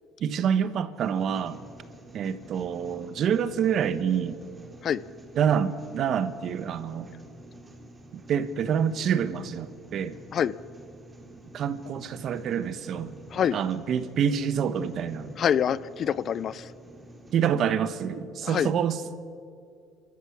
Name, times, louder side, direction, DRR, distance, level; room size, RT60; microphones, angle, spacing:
voice 1, 0.2-1.6 2.1-4.4 5.4-7.1 8.3-10.2 11.5-13.2 13.5-15.3 17.3-19.0, right 8 dB, 50° right, 12 dB, 1.2 m, -27 dB
sound 1, 0.9-17.5, right 1 dB, 15° right, 2.7 m, -49 dB
voice 2, 15.4-16.7 18.4-18.7, left 8 dB, 45° left, 18 dB, 0.5 m, -26 dB
28.0 x 14.0 x 8.6 m, 2.3 s
cardioid pair, 120°, 0 cm